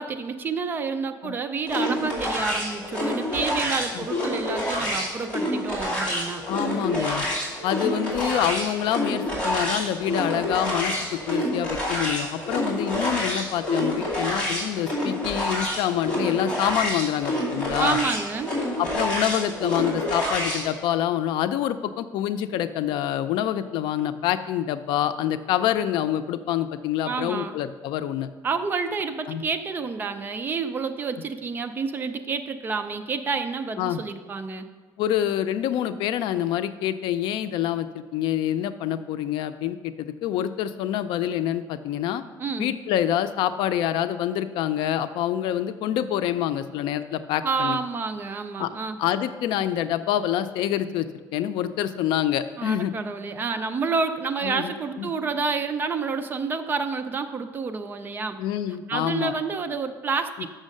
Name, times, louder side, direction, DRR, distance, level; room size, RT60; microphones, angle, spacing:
voice 1, 0.0-6.4 17.8-18.5 27.0-27.5 28.4-34.7 42.4-42.7 47.4-49.0 52.6-58.4 58.9-60.5, right 4 dB, 25° right, 8 dB, 0.5 m, -29 dB
sound 1, 1.7-20.7, left 1 dB, 15° left, 2.5 m, -28 dB
voice 2, 6.5-7.3 7.6-18.0 18.8-28.3 29.3-29.4 33.8-34.0 35.0-42.2 42.6-47.8 48.6-48.7 49.0-51.1 51.3-52.9 54.4-54.7 55.0-55.1 58.4-59.3, left 11 dB, 85° left, 11 dB, 0.4 m, -26 dB
6.4 x 6.2 x 6.4 m, 1.5 s
cardioid pair, 170°, 8 cm